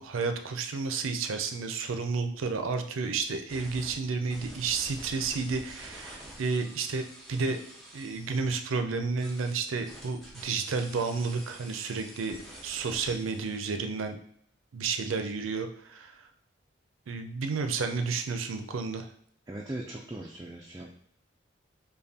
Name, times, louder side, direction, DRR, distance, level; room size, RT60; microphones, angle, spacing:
voice 1, 0.0-7.6 7.9-12.4 12.6-14.2 14.7-16.3 17.1-19.1, right 4 dB, 90° right, 7 dB, 0.4 m, -31 dB
sound 1, 3.5-3.9 4.3-8.4 9.2-13.6, equal, ahead, 0.7 m, -48 dB
voice 2, 19.5-20.9, right 1 dB, 20° right, -2 dB, 0.3 m, -39 dB
5.2 x 2.2 x 2.8 m, 0.65 s
head